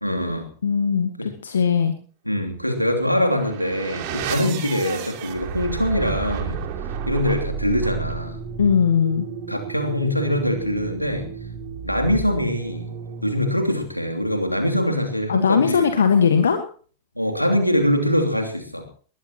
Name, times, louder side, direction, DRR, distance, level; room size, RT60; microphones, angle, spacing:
voice 1, 0.0-0.5 1.2-1.3 2.2-6.6 7.0-8.4 9.5-11.3 11.8-12.9 13.2-15.9 17.1-19.0, left 1 dB, 90° left, 3 dB, 3.0 m, -23 dB
voice 2, 0.6-1.9 8.6-9.2 15.3-16.6, left 6 dB, 70° left, 8 dB, 1.5 m, -19 dB
sound 1, 3.1-13.8, right 6 dB, 45° right, 3.1 m, -32 dB
21.5 x 19.5 x 3.0 m, 0.43 s
figure-of-eight pair, 90°, 0 cm